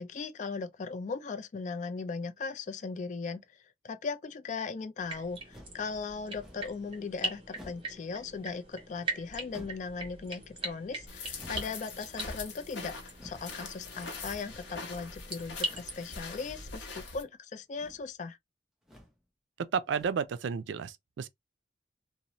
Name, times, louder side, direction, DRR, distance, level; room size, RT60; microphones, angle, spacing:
voice 1, 0.0-18.4, left 4 dB, 40° left, 0.3 m, -38 dB
sound 1, 5.0-16.8, right 2 dB, 30° right, 0.9 m, -42 dB
sound 2, 5.5-5.9 6.4-6.8 7.5-8.0 9.5-9.9 11.4-11.8 13.1-13.5 14.4-14.8 15.6-16.0 16.9-17.3 17.6-18.1 18.8-19.2 19.9-20.3, left 1 dB, 5° right, 0.6 m, -52 dB
sound 3, 11.1-17.2, left 3 dB, 85° left, 0.8 m, -43 dB
voice 2, 19.6-21.3, right 6 dB, 90° right, 0.4 m, -32 dB
2.6 x 2.0 x 2.9 m
head